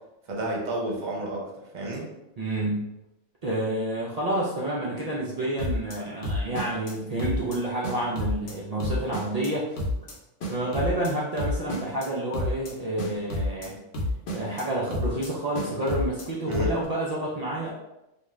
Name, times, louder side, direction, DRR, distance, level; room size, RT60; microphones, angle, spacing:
voice 1, 0.3-2.1 16.5-16.7, right 1 dB, 45° right, -2 dB, 0.7 m, -31 dB
voice 2, 2.4-2.9 3.4-9.8 10.5-13.8 14.3-17.7, right 1 dB, 70° right, -5 dB, 0.3 m, -29 dB
sound 1, 5.6-6.0 6.2-6.9 7.2-7.6 7.8-8.5 8.8-9.5 9.8-10.1 10.4-11.1 11.4-12.1 12.3-12.7 13.0-13.7 13.9-14.6 14.9-15.3 15.5-16.2 16.5-16.9, left 1 dB, 65° left, 0.9 m, -29 dB
2.4 x 2.3 x 3.0 m, 0.91 s
omnidirectional pair, 1.2 m